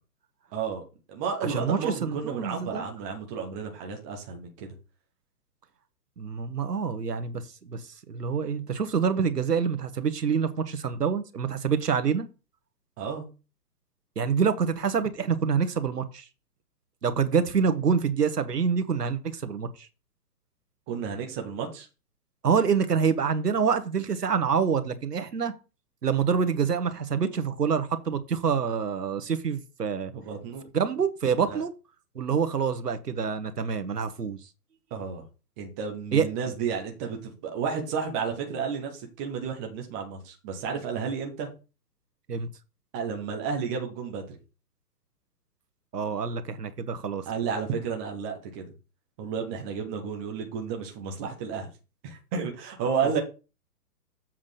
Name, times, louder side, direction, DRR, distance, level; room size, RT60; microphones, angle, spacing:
voice 1, 0.5-0.8 1.1-4.7 13.0-13.3 20.9-21.9 30.1-30.6 31.5-31.6 34.9-35.2 35.6-41.5 42.9-44.4 47.3-48.7 49.2-51.7 52.0-53.2, right 6 dB, 10° right, 0.6 m, -32 dB
voice 2, 1.4-2.8 6.2-7.8 8.1-12.3 14.2-16.2 17.0-19.9 22.4-25.5 26.0-30.1 30.7-31.7 32.1-34.4 36.1-36.3 42.3-42.5 45.9-47.2, right 6 dB, 75° right, 1.3 m, -26 dB
7.4 x 3.7 x 6.4 m
figure-of-eight pair, 125°, 48 cm